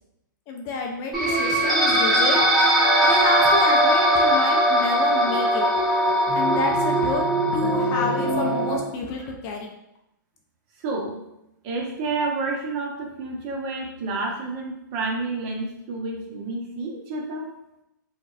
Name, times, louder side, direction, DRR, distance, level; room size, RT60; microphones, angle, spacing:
voice 1, 0.5-5.7 6.3-7.2 7.5-9.7, left 4 dB, 30° left, 1 dB, 0.4 m, -29 dB
sound 1, 1.1-8.8, right 1 dB, ahead, 1.1 m, -20 dB
voice 2, 10.8-11.2 11.6-17.5, right 3 dB, 35° right, 0 dB, 0.7 m, -29 dB
3.9 x 2.2 x 2.3 m, 0.85 s
hypercardioid pair, 140°, 11 cm